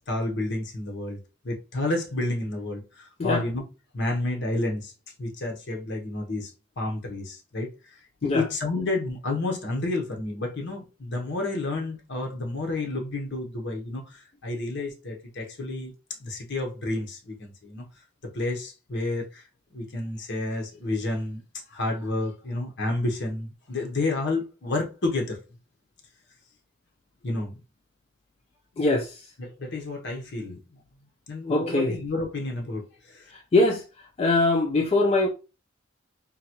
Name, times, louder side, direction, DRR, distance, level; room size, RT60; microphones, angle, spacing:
voice 1, 0.1-1.2 1.4-3.6 3.9-4.9 5.2-7.7 8.2-15.9 16.2-17.8 18.2-19.4 19.7-21.4 21.7-25.4 27.2-27.5 29.4-30.6 31.3-32.8 33.1-33.2, left 2 dB, 60° left, 0.8 m, -30 dB
voice 2, 28.8-29.2 31.5-32.0 33.5-33.8 34.2-35.3, left 2 dB, 30° left, 0.3 m, -22 dB
3.8 x 2.2 x 2.9 m
head